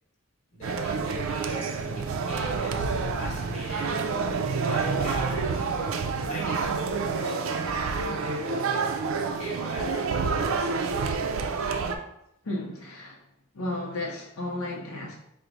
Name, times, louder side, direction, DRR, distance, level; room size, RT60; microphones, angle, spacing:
voice 1, 0.5-4.0 4.6-5.8 6.3-8.9 9.4-10.9, left 1 dB, 35° left, -3 dB, 1.2 m, -41 dB
sound 1, 0.6-12.0, right 4 dB, 70° right, 0.4 m, -28 dB
voice 2, 12.4-13.2 13.5-15.1, left 1 dB, 85° left, -2 dB, 0.6 m, -33 dB
3.9 x 2.1 x 4.5 m, 0.80 s
head